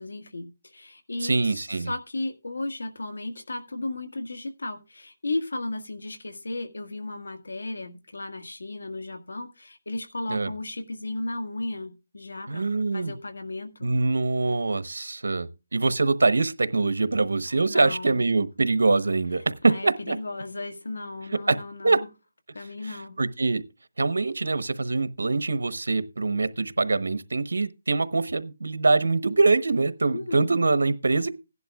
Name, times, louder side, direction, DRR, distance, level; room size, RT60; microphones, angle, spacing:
voice 1, 0.0-12.6 12.9-13.9 17.7-18.3 19.6-22.1 22.5-23.2 30.1-30.6, left 2 dB, 90° left, 1.7 m, -35 dB
voice 2, 1.2-1.9 10.3-10.5 12.5-13.1 13.8-20.2 21.5-21.6 21.8-22.0 22.9-23.6 24.0-31.3, right 3 dB, 85° right, 1.0 m, -24 dB
16.5 x 11.0 x 2.4 m
hypercardioid pair, 170°, 0 cm